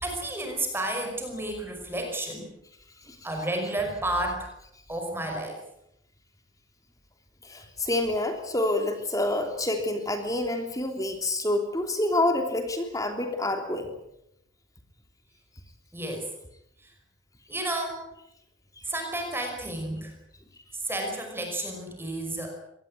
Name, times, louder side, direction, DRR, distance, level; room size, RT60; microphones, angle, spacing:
voice 1, 0.0-2.5 3.2-4.5 4.9-5.6 15.9-16.3 16.8-16.9 17.5-18.0 18.8-20.2 20.7-22.6, right 1 dB, 10° right, 3 dB, 5.4 m, -31 dB
voice 2, 7.4-13.9, left 1 dB, 15° left, 5 dB, 3.1 m, -27 dB
24.0 x 19.5 x 8.6 m, 0.79 s
head